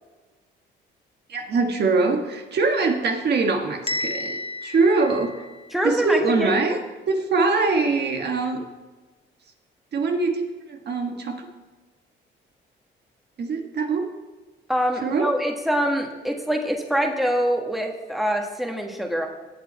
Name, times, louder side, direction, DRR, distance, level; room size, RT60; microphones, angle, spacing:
voice 1, 1.3-5.4 5.8-6.8 7.1-8.6 9.9-10.4 10.7-11.5 13.4-14.1 15.0-15.3, right 3 dB, 55° right, 3 dB, 1.5 m, -23 dB
Bell, 3.9-5.9, left 2 dB, 30° left, 0.8 m, -32 dB
voice 2, 5.7-6.6 14.7-19.3, equal, ahead, 2 dB, 1.6 m, -24 dB
18.5 x 6.8 x 4.3 m, 1.3 s
cardioid pair, 90°, 20 cm